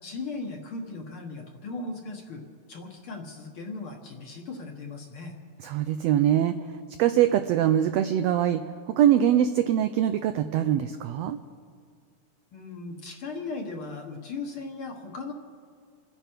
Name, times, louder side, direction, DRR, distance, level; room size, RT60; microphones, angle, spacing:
voice 1, 0.0-2.4 2.7-5.4 12.5-15.3, left 3 dB, 55° left, 2 dB, 1.8 m, -37 dB
voice 2, 5.6-8.7 9.0-11.4, right 10 dB, 85° right, 9 dB, 1.4 m, -23 dB
29.5 x 10.0 x 4.5 m, 2.2 s
omnidirectional pair, 3.5 m